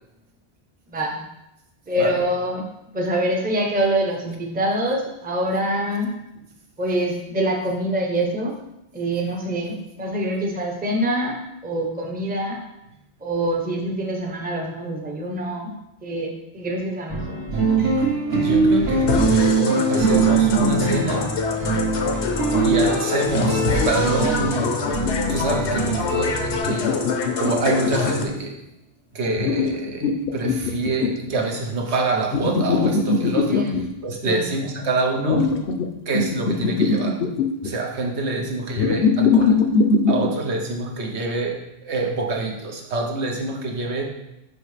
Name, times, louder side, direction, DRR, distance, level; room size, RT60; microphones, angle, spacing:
voice 1, 0.9-1.2 1.9-2.7 2.9-6.1 6.8-8.6 8.9-12.6 13.2-15.7 16.0-17.4 22.0-22.3 33.5-33.8 34.2-34.4, right 1 dB, 10° right, 1 dB, 0.6 m, -25 dB
sound 1, 17.1-26.6, right 4 dB, 65° right, 1.4 m, -22 dB
voice 2, 17.7-21.3 22.6-24.7 25.3-26.9 27.4-28.6 29.1-35.5 36.1-37.2 37.6-39.6 40.1-44.1, right 2 dB, 80° right, 1 dB, 1.2 m, -26 dB
sound 2, 19.1-28.2, left 4 dB, 85° left, 1.1 m, -26 dB
sound 3, 23.7-25.6 26.6-28.3 29.4-31.3 32.3-33.8 35.2-35.9 36.1-37.7 38.8-40.3, left 5 dB, 65° left, 0.7 m, -21 dB
5.4 x 5.3 x 3.3 m, 0.87 s
omnidirectional pair, 1.1 m